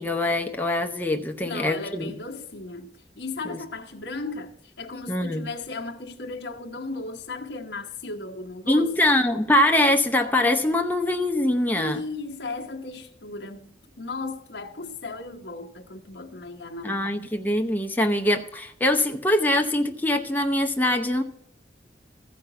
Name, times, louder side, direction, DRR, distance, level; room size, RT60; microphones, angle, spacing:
voice 1, 0.0-2.2 3.5-3.6 5.1-5.5 8.7-12.0 16.8-21.2, left 1 dB, 10° left, 0.7 m, -23 dB
voice 2, 1.4-2.9 3.2-9.1 11.7-17.0, left 3 dB, 80° left, 1.1 m, -36 dB
14.5 x 5.2 x 6.9 m
head